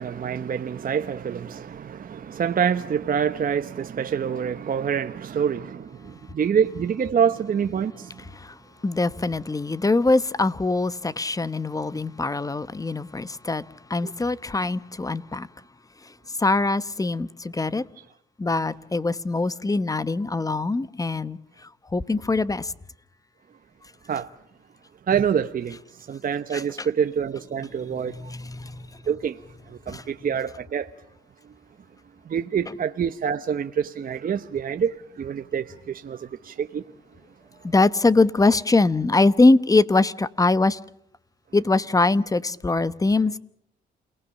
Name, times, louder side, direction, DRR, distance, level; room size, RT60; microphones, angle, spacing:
voice 1, 0.0-5.9 6.3-8.1 24.1-24.3 25.1-25.8 26.1-28.1 29.1-29.4 29.9-30.9 32.3-36.8, right 7 dB, 45° right, 1.0 m, -26 dB
voice 2, 8.8-13.6 13.9-15.5 16.4-17.8 18.4-21.4 21.9-22.7 26.5-26.6 28.1-28.9 29.9-30.0 37.6-40.8 41.5-43.4, left 3 dB, 15° left, 1.0 m, -22 dB
29.0 x 19.0 x 7.2 m
cardioid pair, 90°, 20 cm